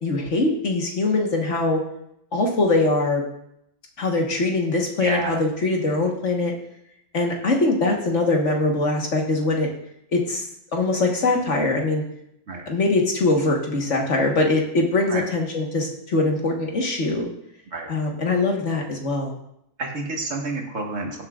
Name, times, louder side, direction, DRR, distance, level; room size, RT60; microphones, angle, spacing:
voice 1, 0.0-1.8 2.3-3.2 4.0-6.5 7.1-9.7 10.1-10.4 10.7-12.0 12.7-17.3 17.9-19.3, left 2 dB, 55° left, 1 dB, 1.7 m, -22 dB
voice 2, 5.0-5.4 12.5-12.6 15.1-15.2 17.7-17.9 19.8-21.2, right 3 dB, 60° right, -1 dB, 2.1 m, -29 dB
17.0 x 7.3 x 2.5 m, 0.76 s
omnidirectional pair, 1.5 m